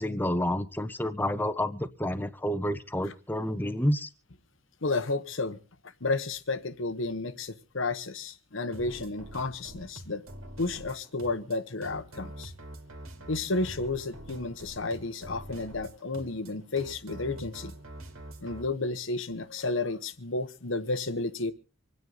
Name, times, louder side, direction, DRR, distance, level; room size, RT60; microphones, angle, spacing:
voice 1, 0.0-4.1, left 1 dB, 10° left, 0.8 m, -29 dB
voice 2, 4.8-5.6 6.0-10.2 10.6-12.5 13.3-17.7 18.4-21.5, left 3 dB, 65° left, 1.1 m, -32 dB
sound 1, 8.7-18.6, right 1 dB, 85° right, 2.7 m, -45 dB
26.0 x 9.6 x 4.0 m
head